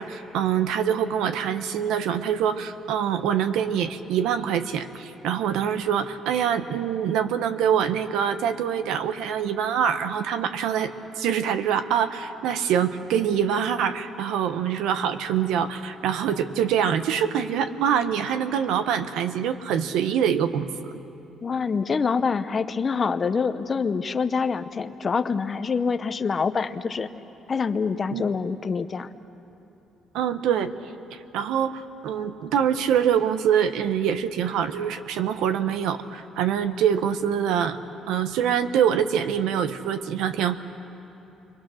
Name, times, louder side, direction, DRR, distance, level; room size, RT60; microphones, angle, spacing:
voice 1, 0.0-20.9 28.1-28.2 30.1-30.7 31.3-37.8 38.1-40.6, right 8 dB, 85° right, 10 dB, 1.0 m, -25 dB
voice 2, 21.4-27.1 27.5-29.1, left 5 dB, 30° left, 10 dB, 0.7 m, -26 dB
29.0 x 23.5 x 6.4 m, 2.9 s
cardioid pair, 145°, 0 cm